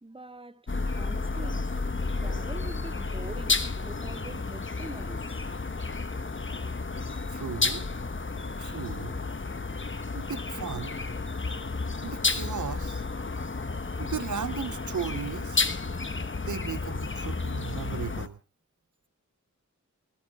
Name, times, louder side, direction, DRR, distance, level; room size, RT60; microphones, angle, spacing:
voice 1, 0.0-1.8 2.1-5.4, right 2 dB, 15° right, 1.1 m, -44 dB
sound 1, 0.7-18.3, left 3 dB, 40° left, 1.2 m, -32 dB
voice 2, 7.3-7.9 8.6-9.2 10.1-11.0 12.0-13.0 14.0-15.6 16.4-18.4, right 7 dB, 70° right, 0.8 m, -36 dB
28.5 x 11.0 x 3.5 m
wide cardioid pair, 65°, 31 cm